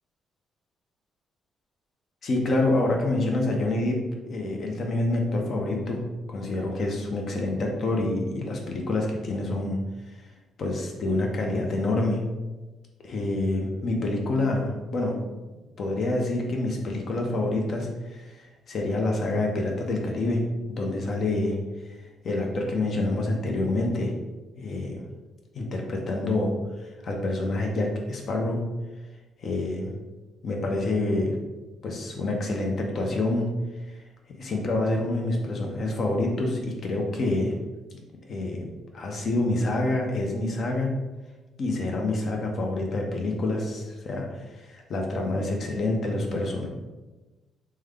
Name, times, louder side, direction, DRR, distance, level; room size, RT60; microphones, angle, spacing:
voice 1, 2.2-4.0 4.3-6.0 6.3-9.8 10.1-10.2 10.6-12.2 13.0-15.2 15.8-20.4 20.7-21.6 21.9-22.0 22.2-24.1 24.6-25.0 25.5-28.6 29.4-29.9 30.4-31.4 31.8-33.5 33.9-34.0 34.4-37.5 38.2-38.7 38.9-40.9 41.6-46.7, left 2 dB, 55° left, 1 dB, 0.7 m, -27 dB
3.3 x 2.1 x 3.5 m, 1.2 s
cardioid pair, 90°, 0 cm